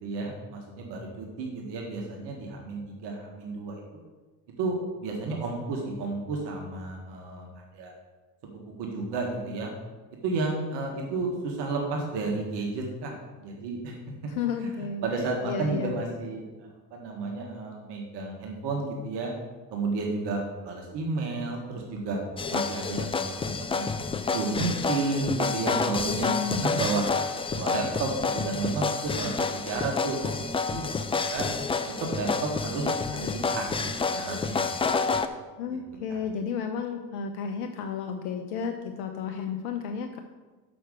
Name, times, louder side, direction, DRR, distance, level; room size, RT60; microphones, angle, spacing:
voice 1, 0.0-4.0 4.6-7.5 7.7-7.9 8.8-9.7 10.2-13.1 13.4-13.9 14.6-19.3 19.7-22.2 22.5-27.1 27.5-30.4 30.7-31.5 32.0-32.9 33.1-34.7 35.7-35.8 36.1-36.2, right 3 dB, 55° right, 0 dB, 1.8 m, -32 dB
voice 2, 14.2-15.0 15.4-15.9 26.1-26.6 35.6-40.2, left 6 dB, 65° left, 6 dB, 0.8 m, -32 dB
sound 1, 22.4-35.3, left 4 dB, 10° left, 0.4 m, -29 dB
6.4 x 6.0 x 6.7 m, 1.3 s
hypercardioid pair, 60°, 50 cm